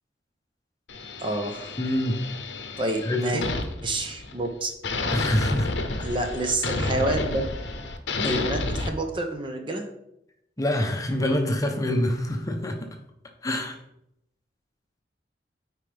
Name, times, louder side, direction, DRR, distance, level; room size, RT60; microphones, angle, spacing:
sound 1, 0.9-4.5 4.8-8.9, left 3 dB, 80° left, 0.7 m, -30 dB
voice 1, 1.2-1.8 2.8-3.4 3.8-4.7 6.0-7.5 8.2-9.9, right 2 dB, 30° right, 5 dB, 0.7 m, -28 dB
voice 2, 1.8-2.2 3.0-3.5 5.1-5.7 8.2-8.4 10.6-13.0 13.4-13.8, left 1 dB, 20° left, 3 dB, 0.8 m, -26 dB
9.0 x 4.5 x 3.4 m, 0.80 s
head